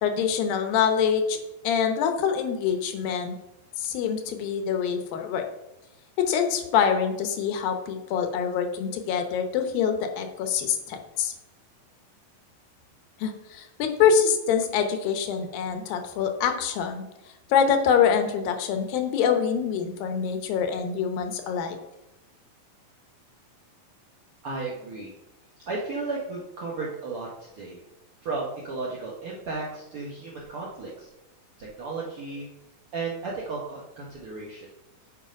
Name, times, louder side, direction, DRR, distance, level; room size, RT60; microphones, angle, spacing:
voice 1, 0.0-1.4 1.6-3.4 3.8-5.4 6.3-11.3 13.2-17.0 17.5-21.8, left 7 dB, 85° left, 6 dB, 2.7 m, -25 dB
voice 2, 24.4-25.1 25.7-27.8 28.2-31.1 31.6-32.5 32.9-34.7, right 3 dB, 70° right, -4 dB, 1.3 m, -34 dB
8.2 x 4.9 x 5.1 m, 0.94 s
omnidirectional pair, 4.0 m